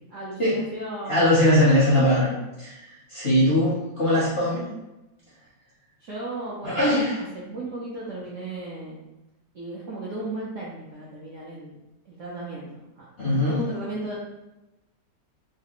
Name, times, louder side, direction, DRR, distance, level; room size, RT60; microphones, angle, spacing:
voice 1, 0.1-1.5 3.3-3.5 6.0-7.0 7.3-9.0 9.5-11.8 12.0-13.0 13.5-14.2, right 2 dB, 70° right, -7 dB, 0.7 m, -35 dB
voice 2, 1.1-2.3 2.6-4.6 6.6-7.2 13.2-13.6, left 1 dB, 60° left, -9 dB, 0.6 m, -21 dB
3.2 x 2.4 x 2.9 m, 0.98 s
omnidirectional pair, 2.0 m